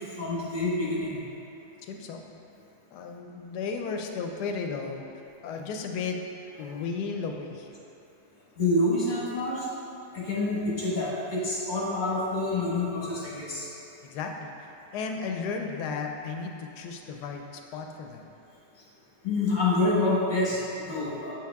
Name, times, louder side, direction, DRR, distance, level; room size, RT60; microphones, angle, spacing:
voice 1, 0.1-1.2 8.6-9.7 10.1-13.7 19.2-21.3, left 2 dB, 30° left, -6 dB, 1.4 m, -27 dB
voice 2, 1.9-2.2 2.9-5.1 5.4-6.2 6.6-7.7 14.0-18.2, left 5 dB, 85° left, 3 dB, 1.2 m, -34 dB
7.8 x 4.6 x 3.5 m, 2.7 s
omnidirectional pair, 1.7 m